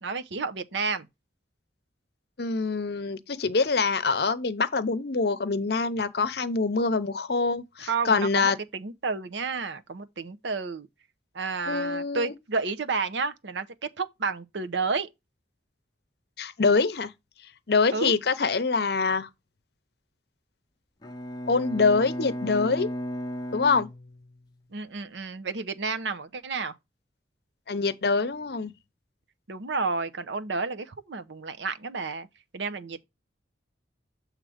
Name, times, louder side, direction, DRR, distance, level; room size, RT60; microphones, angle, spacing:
voice 1, 0.0-1.1 7.8-10.9 11.3-13.7 14.0-15.1 17.9-18.1 24.7-26.7 29.5-32.3 32.5-33.0, right 4 dB, 85° right, 0.7 m, -31 dB
voice 2, 2.4-8.6 11.7-12.3 16.4-17.1 17.7-19.3 21.5-22.9 23.5-23.9 27.7-28.7, left 4 dB, 60° left, 0.7 m, -25 dB
Bowed string instrument, 21.0-24.6, equal, 25° left, 0.7 m, -35 dB
7.6 x 3.2 x 4.9 m
head